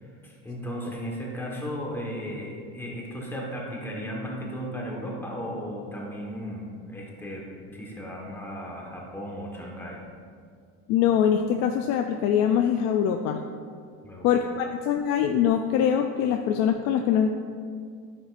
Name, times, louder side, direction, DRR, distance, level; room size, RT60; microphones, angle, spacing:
voice 1, 0.0-10.0 14.0-14.4, equal, 5° left, -2 dB, 1.3 m, -35 dB
voice 2, 10.9-13.4 14.2-17.3, left 9 dB, 50° left, 5 dB, 0.4 m, -23 dB
9.9 x 9.9 x 2.5 m, 2.1 s
cardioid pair, 155°, 36 cm